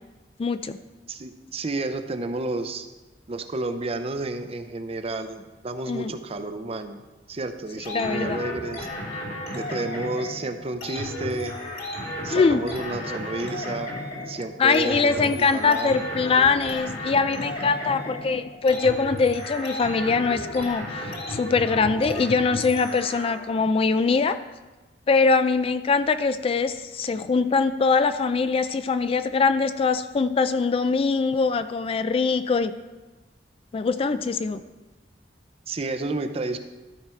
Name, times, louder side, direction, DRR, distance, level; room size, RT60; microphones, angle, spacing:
voice 1, 0.4-0.8 5.9-6.1 7.9-8.4 12.3-12.6 14.6-24.4 25.1-32.7 33.7-34.6, left 4 dB, 30° left, 11 dB, 0.3 m, -22 dB
voice 2, 1.1-2.9 3.3-7.0 7.3-8.9 9.5-11.5 12.2-13.9 14.2-16.0 35.7-36.6, right 2 dB, 35° right, 8 dB, 0.6 m, -31 dB
sound 1, 7.8-23.6, left 1 dB, 60° left, 2.3 m, -34 dB
13.0 x 4.9 x 4.4 m, 1.2 s
head